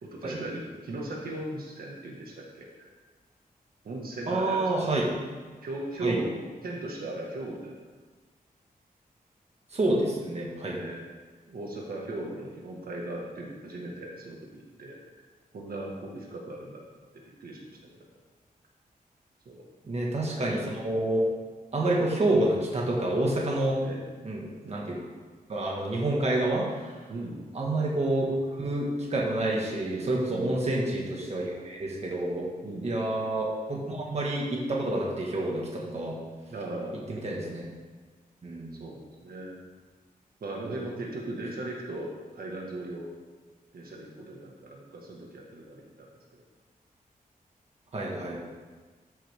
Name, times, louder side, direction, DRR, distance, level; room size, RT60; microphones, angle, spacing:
voice 1, 0.0-2.9 3.8-4.9 5.6-6.3 6.6-7.7 10.7-11.1 11.5-15.3 15.5-16.8 17.1-17.7 19.5-19.6 23.8-24.1 27.1-27.5 30.3-30.6 32.6-33.0 36.5-37.0 38.8-39.6 40.4-43.1 43.7-46.1, right 2 dB, 75° right, -2 dB, 1.8 m, -38 dB
voice 2, 4.3-5.1 6.0-6.2 9.7-10.8 19.8-21.3 21.7-23.8 24.2-25.0 25.5-27.0 27.5-32.5 32.8-36.2 37.1-37.6 38.4-38.8 47.9-48.4, right 1 dB, 45° right, -3 dB, 1.7 m, -28 dB
13.5 x 7.5 x 3.7 m, 1.4 s
wide cardioid pair, 175°, 15 cm